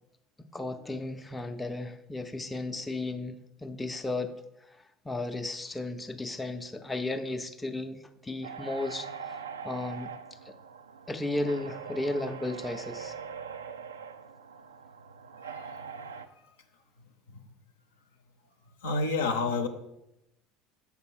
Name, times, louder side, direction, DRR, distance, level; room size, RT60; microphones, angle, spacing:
voice 1, 0.4-4.3 4.6-10.1 10.4-10.5 11.1-13.2, left 2 dB, 10° left, 6 dB, 0.5 m, -35 dB
sound 1, 8.4-16.3, right 6 dB, 75° right, 0.3 m, -42 dB
voice 2, 18.8-19.7, left 3 dB, 70° left, 6 dB, 0.6 m, -29 dB
6.7 x 5.1 x 4.6 m, 0.86 s
figure-of-eight pair, 65°, 0 cm